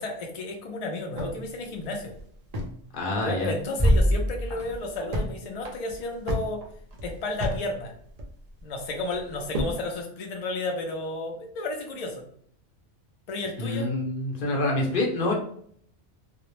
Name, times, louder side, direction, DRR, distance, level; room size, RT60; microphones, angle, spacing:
voice 1, 0.0-2.1 3.2-6.6 7.0-7.9 8.6-12.2 13.3-13.9, left 2 dB, 70° left, 1 dB, 0.3 m, -32 dB
sound 1, 1.2-2.9 3.1-3.2 3.6-4.1 4.5-5.3 5.6-7.7 7.9-8.6 9.1-9.8, equal, 55° right, 0.4 m, -32 dB
voice 2, 2.9-3.5 13.6-15.3, left 2 dB, 50° left, 0 dB, 0.8 m, -26 dB
sound 2, 3.8-5.4, equal, 5° right, 0.8 m, -23 dB
2.2 x 2.0 x 3.0 m, 0.62 s
omnidirectional pair, 1.2 m